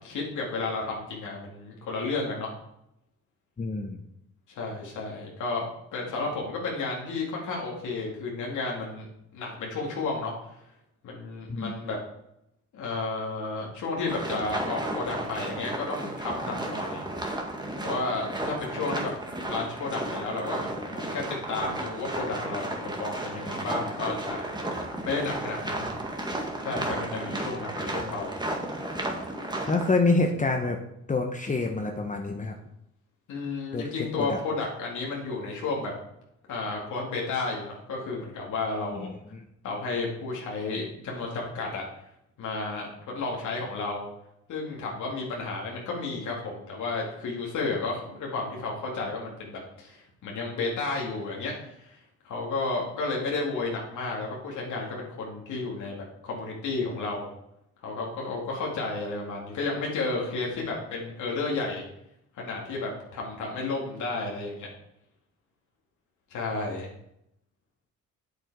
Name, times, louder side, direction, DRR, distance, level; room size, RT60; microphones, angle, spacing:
voice 1, 0.0-2.5 4.5-9.1 9.3-10.5 11.0-12.0 12.7-17.0 17.8-19.1 19.4-24.5 25.0-25.9 26.6-28.4 33.3-35.9 36.5-39.1 39.6-41.8 42.4-44.1 44.5-52.0 52.2-57.3 57.8-61.8 62.4-64.7 66.3-66.9, left 3 dB, 80° left, -2 dB, 2.3 m, -32 dB
voice 2, 3.6-4.0 11.5-11.7 29.7-30.8 31.1-32.6 33.7-33.9 34.2-34.4 38.9-39.4, left 3 dB, 25° left, 3 dB, 0.9 m, -27 dB
sound 1, 14.1-29.9, right 1 dB, 15° right, 1.8 m, -33 dB
8.1 x 7.7 x 4.8 m, 0.79 s
cardioid pair, 90°, 30 cm